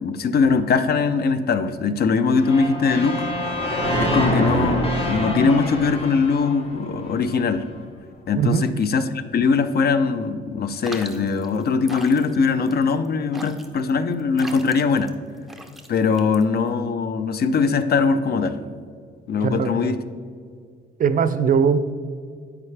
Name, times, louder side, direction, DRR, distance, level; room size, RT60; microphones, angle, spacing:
voice 1, 0.0-3.3 4.0-7.6 8.3-15.1 15.9-18.6 19.3-20.0, left 5 dB, 50° left, 11 dB, 0.5 m, -21 dB
sound 1, 2.4-7.4, equal, 30° left, 1.4 m, -25 dB
voice 2, 8.4-8.7 19.4-19.9 21.0-21.9, right 6 dB, 45° right, 12 dB, 0.4 m, -20 dB
sound 2, 10.8-16.8, right 1 dB, ahead, 0.7 m, -40 dB
9.4 x 4.9 x 3.3 m, 2.1 s
cardioid pair, 90°, 20 cm